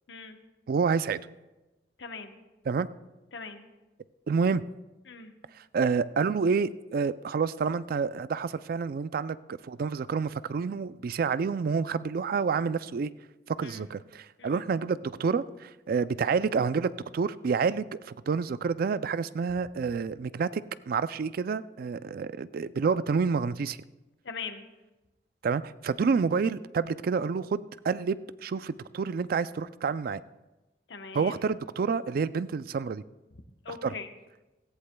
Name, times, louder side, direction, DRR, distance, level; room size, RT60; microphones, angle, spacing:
voice 1, 0.7-1.2 2.7-2.9 4.3-4.6 5.7-9.4 9.6-13.1 13.5-23.8 25.4-30.2 31.1-33.0 33.7-33.9, right 5 dB, 55° right, 15 dB, 0.4 m, -28 dB
voice 2, 2.0-2.4 3.3-3.6 5.1-5.3 13.6-13.9 14.4-14.6 24.2-24.7 30.9-31.3 33.6-34.1, left 4 dB, 85° left, 7 dB, 0.9 m, -41 dB
17.0 x 14.5 x 2.2 m, 1.1 s
head